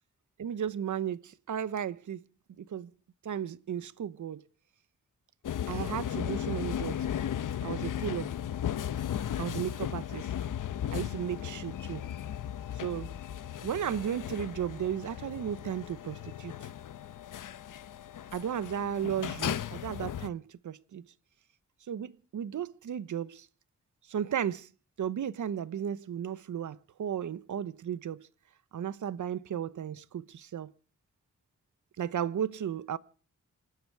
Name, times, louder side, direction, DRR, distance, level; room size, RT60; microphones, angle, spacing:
voice 1, 0.4-2.2 2.6-2.9 3.2-4.4 5.7-7.1 7.6-8.3 9.4-10.3 10.9-12.1 12.8-13.1 13.6-16.5 18.3-21.0 21.9-23.5 24.1-24.7 25.0-28.3 28.7-30.7 32.0-33.0, right 9 dB, 70° right, 1.0 m, -34 dB
sound 1, 5.4-20.3, left 10 dB, 80° left, 0.9 m, -36 dB
28.0 x 11.0 x 4.7 m
wide cardioid pair, 105°, 31 cm